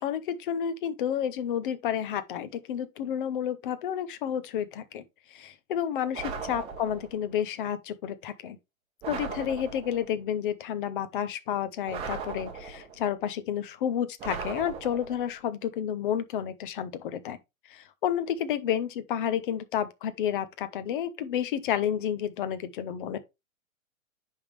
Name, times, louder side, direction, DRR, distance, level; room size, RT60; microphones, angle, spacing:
voice 1, 0.0-5.0 5.3-8.6 9.1-17.4 17.7-23.2, left 9 dB, 40° left, 0.8 m, -30 dB
sound 1, 6.1-7.2 9.0-10.1 11.9-13.0 14.2-15.3, right 5 dB, 15° right, 1.0 m, -38 dB
10.0 x 3.7 x 3.2 m
hypercardioid pair, 155°, 42 cm